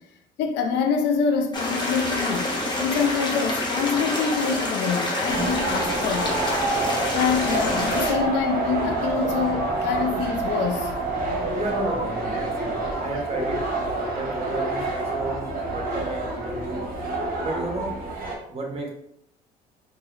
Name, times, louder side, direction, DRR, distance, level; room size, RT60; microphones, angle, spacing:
voice 1, 0.4-6.5 7.1-10.9, left 6 dB, 60° left, 0.5 m, -26 dB
sound 1, 1.5-8.1, left 1 dB, 20° left, 1.1 m, -27 dB
sound 2, 5.3-18.3, right 2 dB, 45° right, 1.2 m, -28 dB
voice 2, 11.5-13.8 14.1-16.8 17.4-17.9 18.5-18.9, right 2 dB, 30° right, 1.1 m, -32 dB
4.0 x 2.7 x 2.4 m
hypercardioid pair, 60°, 20 cm